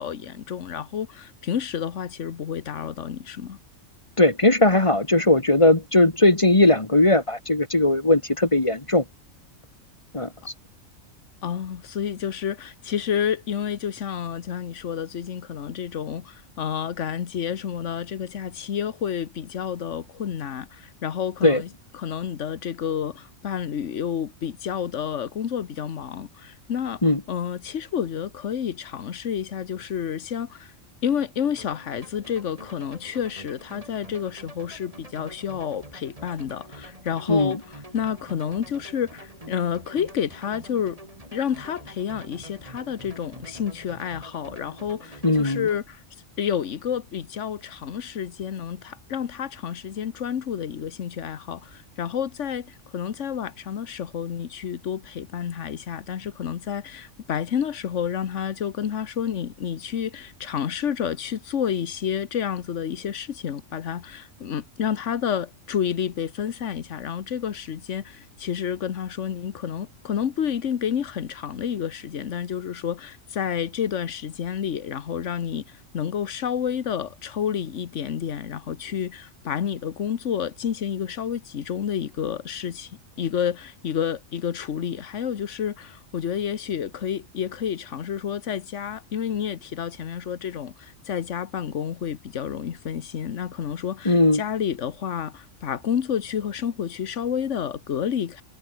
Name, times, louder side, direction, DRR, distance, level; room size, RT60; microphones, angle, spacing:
voice 1, 0.0-3.6 11.4-21.7 21.9-27.0 27.3-30.7 31.0-37.6 37.9-41.0 41.3-46.0 46.4-98.4, left 8 dB, 65° left, 1.4 m, -30 dB
voice 2, 4.2-9.0 10.1-10.3 21.4-21.6 27.0-27.2 37.3-37.6 45.2-45.7 94.0-94.4, left 2 dB, 25° left, 1.6 m, -18 dB
sound 1, 31.6-45.8, right 1 dB, 25° right, 4.0 m, -46 dB
omnidirectional pair, 1.3 m